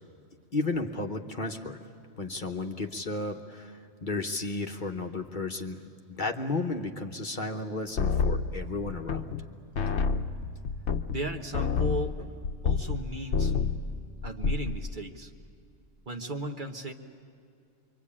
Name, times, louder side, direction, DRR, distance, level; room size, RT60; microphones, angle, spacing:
voice 1, 0.5-1.8 2.2-5.8 6.1-9.3, left 3 dB, 40° left, 4 dB, 1.1 m, -33 dB
sound 1, 8.0-9.5 9.8-13.0 13.3-13.9 14.2-14.8, left 5 dB, 65° left, 1.1 m, -28 dB
voice 2, 11.1-13.5 14.2-15.3 16.1-16.9, right 1 dB, 40° right, 4 dB, 1.2 m, -36 dB
26.5 x 24.0 x 8.6 m, 2.4 s
omnidirectional pair, 1.3 m